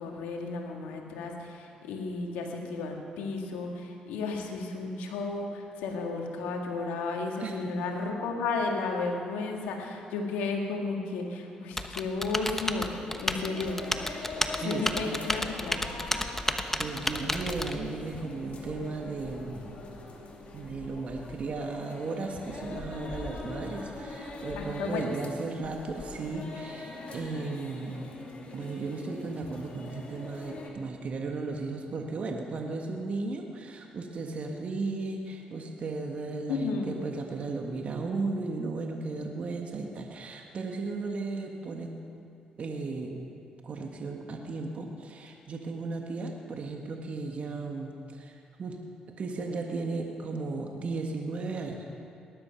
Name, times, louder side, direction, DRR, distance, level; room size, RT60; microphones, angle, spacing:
voice 1, 0.0-13.9 14.5-15.8 24.6-25.0 36.5-37.0, left 3 dB, 85° left, 2 dB, 1.9 m, -33 dB
voice 2, 7.4-7.8 14.6-15.2 16.1-16.4 16.8-19.7 20.5-28.0 28.5-42.0 42.6-43.2 43.6-48.8 49.2-51.8, right 3 dB, 50° right, 2 dB, 1.5 m, -35 dB
Typing, 11.8-17.8, left 1 dB, 10° left, 1.0 m, -31 dB
sound 1, 12.9-30.7, left 3 dB, 50° left, 2.6 m, -42 dB
19.0 x 11.0 x 5.7 m, 2.5 s
supercardioid pair, 60°, 3 cm